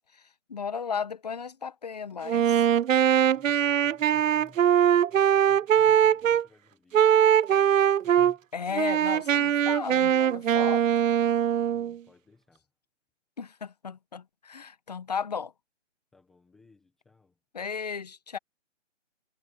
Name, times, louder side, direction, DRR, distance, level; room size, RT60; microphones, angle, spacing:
voice 1, 0.5-2.7 8.5-10.8 13.4-15.5 17.5-18.4, left 6 dB, 30° left, 1.2 m, -35 dB
Wind instrument woodwind instrument, 2.3-6.4 6.9-8.3 8.7-12.0, right 9 dB, 90° right, 0.5 m, -22 dB
voice 2, 3.3-8.5 11.6-12.7 16.1-17.4, left 3 dB, ahead, 1.0 m, -59 dB
hypercardioid pair, 170°, 38 cm